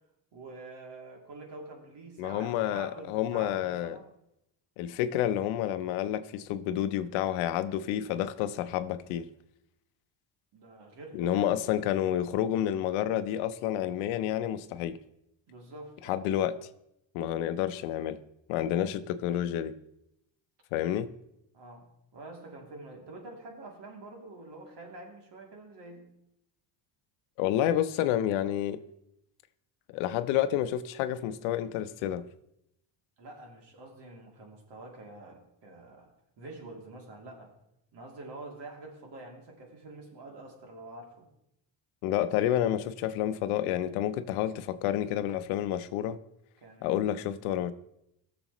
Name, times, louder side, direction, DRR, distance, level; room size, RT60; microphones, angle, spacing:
voice 1, 0.3-4.0 10.5-11.5 15.5-16.3 21.5-21.9 22.1-26.1 33.2-36.1 36.4-37.5 37.9-41.3 46.6-47.3, right 2 dB, 60° right, 2.8 m, -46 dB
voice 2, 2.2-4.0 4.8-9.3 11.1-15.0 16.1-16.6 17.1-18.2 18.5-19.7 20.7-21.1 27.4-28.8 29.9-32.2 42.0-46.2 46.8-47.7, left 11 dB, 90° left, 0.7 m, -29 dB
16.5 x 6.9 x 3.0 m
supercardioid pair, 90°, 47 cm